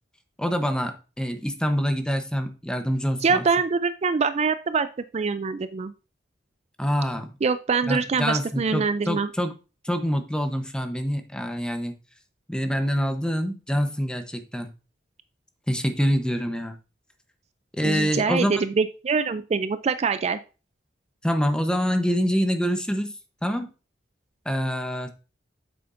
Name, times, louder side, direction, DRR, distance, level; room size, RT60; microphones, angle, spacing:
voice 1, 0.4-3.4 6.8-7.3 7.9-9.5 9.8-11.9 12.5-14.7 15.7-16.7 17.8-18.6 21.2-23.1 23.4-23.7 24.4-25.1, equal, 5° left, 7 dB, 0.9 m, -26 dB
voice 2, 3.2-4.9 5.1-5.9 7.4-9.3 17.8-20.4, right 5 dB, 40° right, 12 dB, 0.4 m, -24 dB
8.6 x 7.0 x 2.6 m, 0.32 s
head